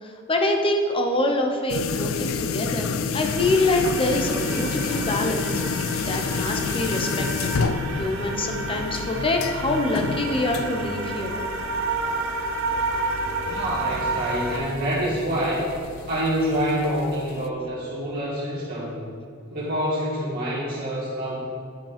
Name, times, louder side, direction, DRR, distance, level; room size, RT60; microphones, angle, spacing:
voice 1, 0.0-7.5 8.0-11.4, left 2 dB, 25° left, 3 dB, 0.8 m, -25 dB
sound 1, 1.7-17.5, left 5 dB, 80° left, 0.4 m, -30 dB
sound 2, 3.2-14.6, right 3 dB, 70° right, 1.0 m, -30 dB
voice 2, 13.5-15.7 16.1-19.0 19.5-21.4, equal, 45° right, -9 dB, 1.8 m, -26 dB
9.6 x 5.3 x 5.1 m, 2.4 s
head